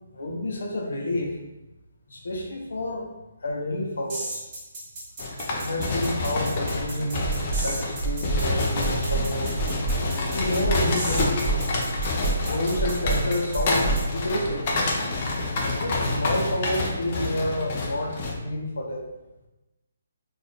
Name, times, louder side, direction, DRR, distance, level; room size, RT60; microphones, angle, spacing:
voice 1, 0.1-1.4 2.1-3.1 3.4-4.4 5.6-7.3 7.6-9.6 10.3-11.6 12.5-15.0 15.8-19.1, left 1 dB, 85° left, 0 dB, 0.8 m, -29 dB
sound 1, 4.1-14.0, right 1 dB, 25° right, 1.1 m, -36 dB
sound 2, 5.2-18.3, left 2 dB, 30° left, 0.5 m, -28 dB
sound 3, 7.2-7.7 8.0-8.4 8.8-9.2 9.5-10.0 10.4-10.8 11.1-11.6 11.9-12.4 12.7-13.2 13.5-14.7, right 4 dB, ahead, 0.9 m, -28 dB
4.1 x 2.5 x 3.4 m, 1.0 s
hypercardioid pair, 175°, 0 cm